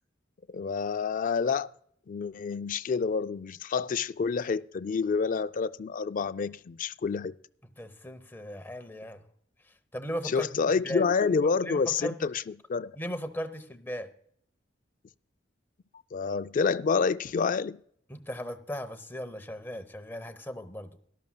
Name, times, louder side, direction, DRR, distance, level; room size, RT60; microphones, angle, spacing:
voice 1, 0.5-1.7 2.1-7.4 10.3-12.3 12.7-12.9 16.1-17.8, left 5 dB, 45° left, 0.4 m, -28 dB
voice 2, 7.8-9.2 9.9-11.0 11.3-12.3 13.0-14.1 18.1-21.0, equal, 10° left, 0.8 m, -37 dB
18.0 x 12.5 x 2.2 m
head